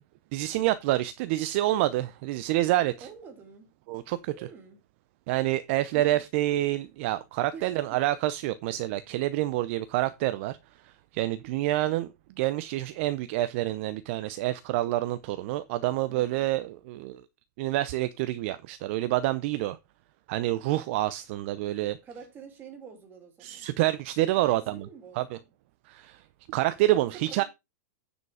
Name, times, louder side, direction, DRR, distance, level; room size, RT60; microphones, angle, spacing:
voice 1, 0.3-3.1 3.9-4.5 5.3-10.6 11.1-12.1 12.4-17.2 17.6-19.8 20.3-22.0 23.4-24.9 25.2-25.4 25.9-26.2 26.5-27.4, right 15 dB, 45° right, 0.6 m, -27 dB
voice 2, 3.0-3.7 4.3-4.8 5.9-6.2 7.5-8.0 16.1-16.5 22.0-23.7 24.4-25.2 26.9-27.4, right 6 dB, 20° right, 2.6 m, -47 dB
9.6 x 5.2 x 4.8 m
supercardioid pair, 155°, 9 cm